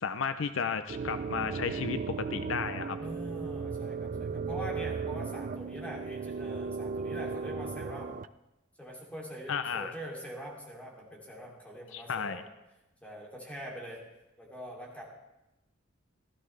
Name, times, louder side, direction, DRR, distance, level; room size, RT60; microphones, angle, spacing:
voice 1, 0.0-3.0 9.5-9.9 11.9-12.4, left 6 dB, 75° left, 11 dB, 0.5 m, -33 dB
sound 1, 0.9-8.3, right 5 dB, 40° right, 0.3 m, -36 dB
voice 2, 3.0-8.2 8.8-12.4 13.0-14.0 14.4-15.0, equal, 5° left, -3 dB, 2.8 m, -43 dB
16.0 x 13.0 x 3.3 m, 0.97 s
head